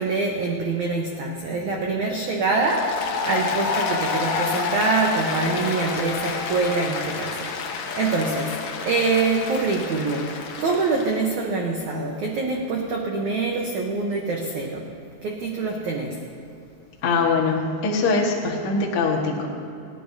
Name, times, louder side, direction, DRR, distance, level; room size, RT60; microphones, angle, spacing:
voice 1, 0.0-8.5 8.8-10.3 10.6-14.8 15.2-16.2, right 3 dB, 90° right, 0 dB, 1.6 m, -25 dB
Applause, 2.5-11.2, left 5 dB, 85° left, 1.6 m, -28 dB
voice 2, 17.0-19.5, left 4 dB, 55° left, -3 dB, 1.5 m, -22 dB
29.5 x 10.0 x 2.8 m, 2.6 s
omnidirectional pair, 5.0 m